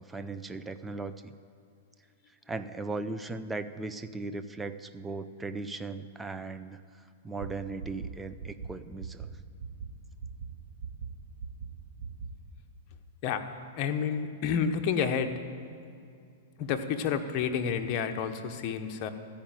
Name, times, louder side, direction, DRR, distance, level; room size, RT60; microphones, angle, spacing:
voice 1, 0.0-1.3 2.5-6.8 7.2-9.3, right 3 dB, 10° right, 10 dB, 0.5 m, -37 dB
sound 1, 7.4-7.5 7.8-8.1 8.4-8.7 9.0-9.3 9.6-9.9 10.2-10.5 10.8-11.1 11.4-11.7 12.0-12.3, right 6 dB, 65° right, 1.4 m, -38 dB
voice 2, 13.7-15.4 16.6-19.1, left 7 dB, 45° left, 6 dB, 0.9 m, -30 dB
14.0 x 5.2 x 8.9 m, 2.4 s
hypercardioid pair, 125°, 0 cm